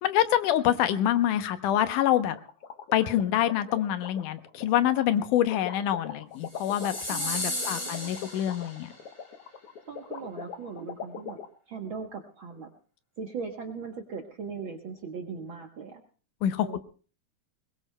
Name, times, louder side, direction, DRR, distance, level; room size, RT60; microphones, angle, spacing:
voice 1, 0.0-2.4 2.9-8.9 16.4-16.8, left 11 dB, 80° left, 10 dB, 2.3 m, -26 dB
sound 1, 2.3-11.5, left 7 dB, 60° left, 1.7 m, -41 dB
sound 2, 6.5-9.0, left 1 dB, 10° left, 1.6 m, -34 dB
voice 2, 7.1-8.1 9.9-11.4 11.7-12.7 13.2-16.0 16.6-16.8, right 5 dB, 60° right, 3 dB, 1.3 m, -39 dB
21.5 x 21.0 x 2.2 m, 0.38 s
omnidirectional pair, 3.6 m